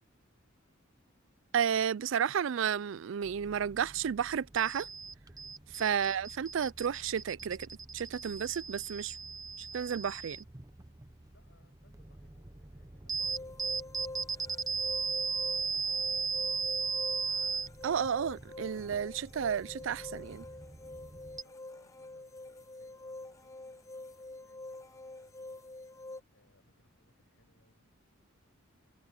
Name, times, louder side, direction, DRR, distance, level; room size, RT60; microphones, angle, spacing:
voice 1, 1.5-4.9 5.7-7.7 7.9-9.1 9.7-10.4 17.8-20.4, right 8 dB, 65° right, 0.4 m, -32 dB
sound 1, 3.2-21.4, right 5 dB, 15° right, 0.7 m, -38 dB
voice 2, 11.3-15.0 15.3-16.4 21.4-25.6 25.9-28.0, left 2 dB, 60° left, 7.4 m, -71 dB
sound 2, 13.2-26.2, left 2 dB, 15° left, 0.7 m, -47 dB
head